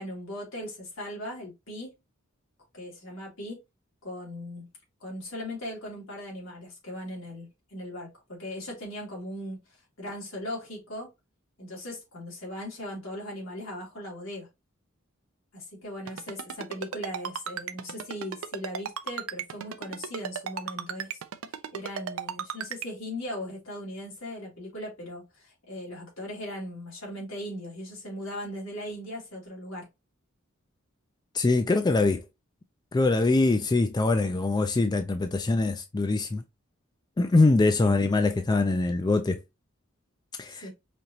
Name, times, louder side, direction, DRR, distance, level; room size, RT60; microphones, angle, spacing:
voice 1, 0.0-1.9 2.7-3.6 4.0-4.7 5.0-9.6 10.0-11.1 11.6-14.5 15.5-21.2 21.7-29.9 37.8-37.9 40.5-40.7, left 1 dB, 75° left, 2.7 m, -38 dB
Ringtone, 16.1-22.9, right 8 dB, 80° right, 0.5 m, -34 dB
voice 2, 31.3-32.2 32.9-36.4 37.2-39.4 40.4-40.6, left 3 dB, 20° left, 0.4 m, -23 dB
5.1 x 2.9 x 2.7 m
head